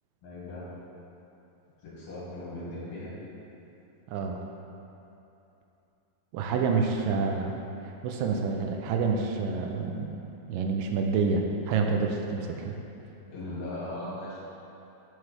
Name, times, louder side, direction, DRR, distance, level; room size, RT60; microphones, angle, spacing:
voice 1, 0.2-0.6 1.8-3.1 13.3-14.4, left 1 dB, 50° left, -8 dB, 2.1 m, -38 dB
voice 2, 4.1-4.4 6.3-7.6 7.8-10.1 10.5-12.8, right 4 dB, 85° right, 2 dB, 1.9 m, -28 dB
9.5 x 4.7 x 3.3 m, 2.9 s
omnidirectional pair, 4.3 m